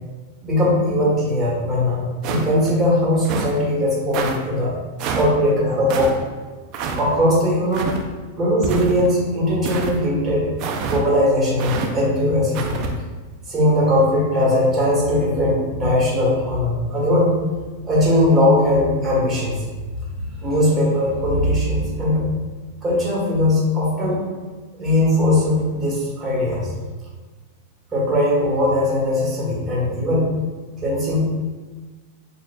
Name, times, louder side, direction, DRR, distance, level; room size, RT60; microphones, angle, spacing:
voice 1, 0.4-4.7 5.1-6.2 6.9-7.9 8.3-10.5 10.9-12.8 13.5-17.3 17.8-19.6 20.2-22.2 22.8-24.2 24.8-26.7 27.9-30.3 30.8-31.3, left 1 dB, 20° right, -5 dB, 1.2 m, -19 dB
sound 1, 2.2-2.7 3.2-3.6 4.1-4.4 5.0-5.3 5.9-6.1 6.7-7.0 7.7-8.0 8.6-9.1 9.6-10.0 10.6-11.0 11.6-11.9 12.5-12.9, right 5 dB, 40° right, 0.4 m, -26 dB
6.3 x 2.4 x 2.3 m, 1.3 s
supercardioid pair, 145°, 0 cm